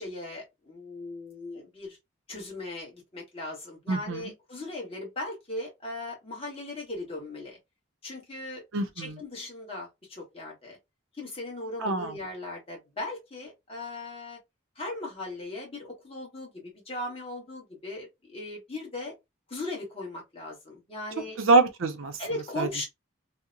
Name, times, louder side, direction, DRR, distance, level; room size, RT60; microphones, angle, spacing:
voice 1, 0.0-2.0 2.3-7.6 8.0-8.6 9.0-10.8 11.2-14.4 14.8-19.1 19.5-21.4 22.2-22.8, left 2 dB, 30° left, 1.1 m, -38 dB
voice 2, 3.9-4.3 8.7-9.2 11.8-12.1 21.4-22.1 22.6-22.7, right 3 dB, 80° right, 0.6 m, -24 dB
2.7 x 2.1 x 2.5 m
head